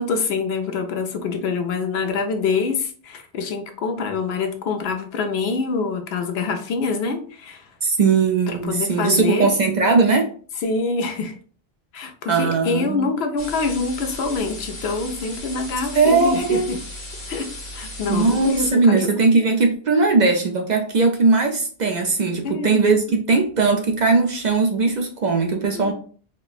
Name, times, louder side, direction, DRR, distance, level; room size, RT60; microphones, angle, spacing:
voice 1, 0.0-7.7 8.5-9.5 10.6-11.3 11.9-16.8 17.3-19.1 22.4-22.8 25.7-25.9, left 4 dB, 80° left, 0.9 m, -25 dB
voice 2, 7.8-10.3 12.3-13.1 15.9-16.8 18.1-25.9, right 4 dB, 55° right, 0.5 m, -19 dB
sound 1, 13.4-18.7, left 1 dB, 50° left, 1.1 m, -36 dB
4.3 x 2.0 x 2.4 m
omnidirectional pair, 1.0 m